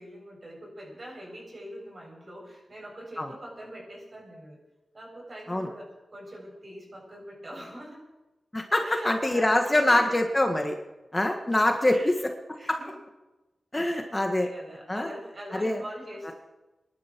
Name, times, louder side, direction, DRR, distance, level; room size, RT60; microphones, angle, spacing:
voice 1, 0.0-4.6 4.9-8.0 8.7-10.0 11.9-12.2 12.5-13.0 13.7-16.3, equal, 45° right, -2 dB, 7.9 m, -43 dB
voice 2, 8.5-10.7 11.1-12.3 12.7-12.8 13.7-14.5 14.9-15.1 15.5-15.8 16.3-16.4, left 1 dB, 20° left, 4 dB, 1.6 m, -24 dB
25.0 x 11.5 x 4.6 m, 1.1 s
cardioid pair, 65°, 0 cm